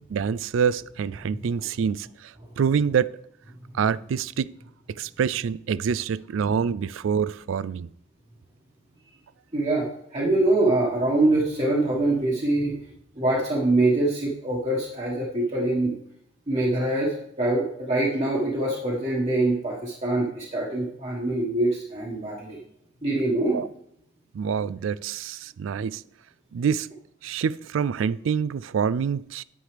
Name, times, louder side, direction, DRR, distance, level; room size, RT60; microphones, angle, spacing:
voice 1, 0.1-3.1 3.7-4.5 4.9-7.9 23.5-23.7 24.3-26.0 26.5-26.9 27.2-29.4, right 7 dB, 80° right, 0.3 m, -26 dB
voice 2, 9.5-9.9 10.1-12.8 13.2-15.9 16.5-22.6 23.0-23.6, right 2 dB, 35° right, 1.4 m, -24 dB
9.6 x 9.3 x 3.3 m
head